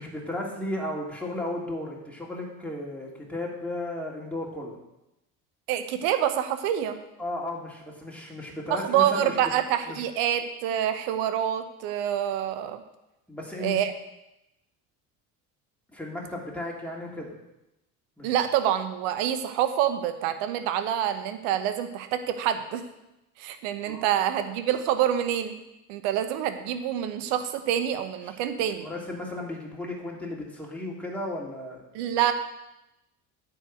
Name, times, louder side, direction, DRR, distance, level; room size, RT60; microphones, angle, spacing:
voice 1, 0.0-4.8 7.2-9.4 9.9-10.0 13.3-13.8 15.9-17.3 18.2-18.3 23.8-24.0 28.8-31.8, left 1 dB, 5° left, -3 dB, 3.0 m, -34 dB
voice 2, 5.7-7.0 8.7-12.8 13.6-13.9 18.2-22.8 23.4-25.6 25.9-28.9 31.9-32.3, right 10 dB, 65° right, 10 dB, 1.0 m, -26 dB
9.1 x 4.8 x 7.6 m, 0.92 s
figure-of-eight pair, 55°, 46 cm